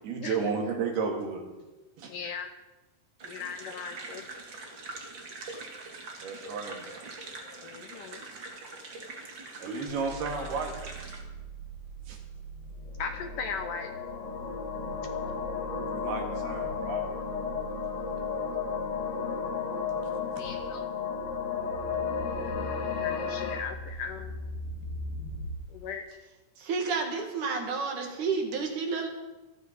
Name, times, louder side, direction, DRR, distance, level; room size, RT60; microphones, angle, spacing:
voice 1, 0.0-1.4 2.0-2.1 6.2-6.9 9.6-10.7 12.1-12.2 15.9-17.0, right 5 dB, 75° right, 2 dB, 4.1 m, -32 dB
voice 2, 2.0-2.5 3.2-4.3 7.4-8.2 13.0-13.9 20.4-20.9 23.0-24.4 25.7-26.1, left 6 dB, 70° left, 6 dB, 2.1 m, -38 dB
sound 1, 3.2-11.2, right 3 dB, 40° right, 2.0 m, -43 dB
sound 2, 9.9-25.5, equal, 90° left, 5.7 m, -42 dB
sound 3, 12.9-23.6, left 6 dB, 55° left, 2.2 m, -33 dB
voice 3, 26.6-29.1, right 4 dB, 55° right, 3 dB, 3.0 m, -30 dB
26.5 x 9.3 x 5.3 m, 1.1 s
omnidirectional pair, 4.5 m